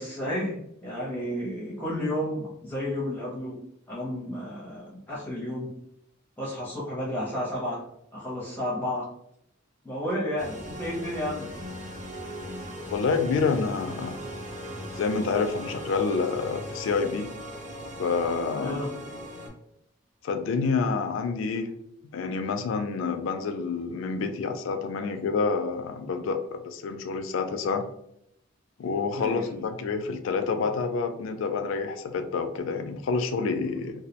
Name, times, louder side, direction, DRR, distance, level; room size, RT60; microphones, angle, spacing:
voice 1, 0.0-3.6 3.9-5.7 6.4-7.8 8.1-9.1 9.8-11.5 18.5-18.9 29.2-29.5, left 1 dB, 10° left, -7 dB, 0.5 m, -32 dB
sound 1, 10.4-19.5, equal, 35° right, 0.7 m, -38 dB
voice 2, 12.9-14.2 14.9-17.3 18.0-18.8 20.2-21.7 22.1-27.8 28.8-33.9, left 4 dB, 70° left, 7 dB, 0.3 m, -28 dB
2.2 x 2.0 x 2.7 m, 0.76 s
head